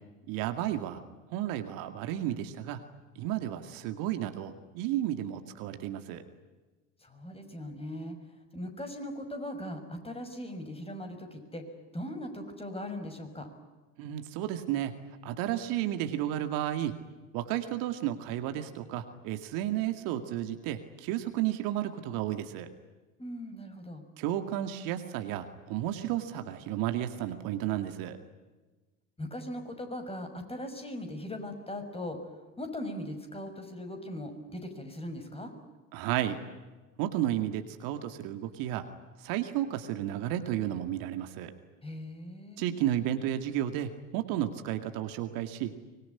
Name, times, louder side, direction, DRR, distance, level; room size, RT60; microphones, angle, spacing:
voice 1, 0.3-1.0 1.3-2.8 3.2-6.2 14.0-15.0 15.2-17.0 17.3-22.7 24.2-28.2 35.9-36.4 37.0-38.9 39.2-41.5 42.6-45.7, right 12 dB, 60° right, 8 dB, 2.2 m, -32 dB
voice 2, 7.0-8.1 8.5-11.6 11.9-13.5 23.2-24.0 29.2-32.2 32.6-35.5 41.8-42.6, left 1 dB, 15° left, 5 dB, 6.2 m, -39 dB
25.0 x 21.5 x 9.8 m, 1.2 s
hypercardioid pair, 70°, 40 cm